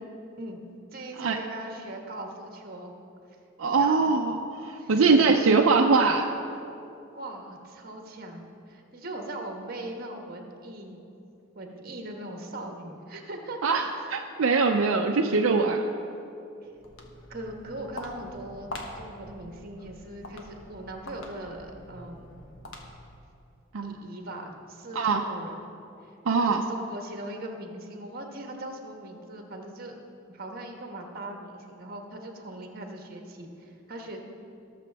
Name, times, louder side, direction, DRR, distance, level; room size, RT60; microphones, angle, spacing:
voice 1, 0.9-2.9 3.6-4.0 4.8-5.2 7.1-11.0 11.5-13.6 17.3-22.4 23.8-25.5 26.3-29.9 30.3-34.2, right 1 dB, 45° right, 2 dB, 1.3 m, -40 dB
voice 2, 3.6-6.3 13.6-15.9 23.7-23.9 24.9-25.2 26.3-26.6, right 4 dB, 75° right, 3 dB, 0.5 m, -22 dB
Walk footsteps, 16.7-23.2, left 1 dB, 65° left, 1.2 m, -44 dB
19.0 x 6.9 x 3.4 m, 2.7 s
head